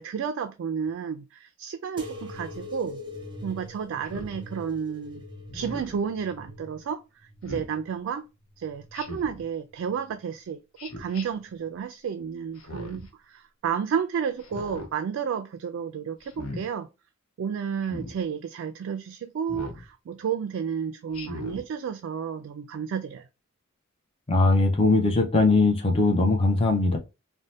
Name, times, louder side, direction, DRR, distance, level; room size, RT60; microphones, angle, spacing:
voice 1, 0.0-3.0 3.4-5.2 5.5-8.3 8.6-16.9 17.4-23.3, right 7 dB, 60° right, 0.3 m, -31 dB
sound 1, 2.0-9.2 9.7-10.5 11.2-11.8 12.7-12.8, left 1 dB, 20° right, 0.6 m, -43 dB
Speech synthesizer, 4.0-4.4 5.5-6.0 7.4-7.7 8.9-9.4 10.8-11.2 12.5-13.1 14.4-14.9 16.2-16.6 17.8-18.1 19.5-19.8 21.1-21.6, left 1 dB, 80° left, 0.8 m, -38 dB
voice 2, 24.3-27.0, left 3 dB, 25° left, 0.6 m, -20 dB
2.7 x 2.1 x 3.1 m
head